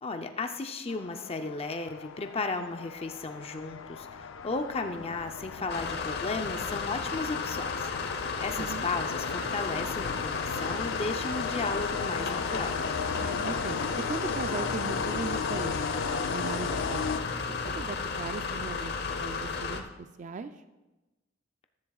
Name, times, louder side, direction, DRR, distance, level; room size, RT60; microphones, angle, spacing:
voice 1, 0.0-7.9 8.4-12.8, left 3 dB, 30° left, 6 dB, 0.6 m, -35 dB
sound 1, 0.9-17.7, left 5 dB, 85° left, 0.5 m, -36 dB
sound 2, 5.7-19.8, left 4 dB, 60° left, 0.8 m, -34 dB
voice 2, 8.6-8.9 13.2-13.8 14.1-20.6, right 4 dB, 40° right, 9 dB, 0.4 m, -39 dB
14.0 x 10.5 x 2.4 m, 1.1 s
head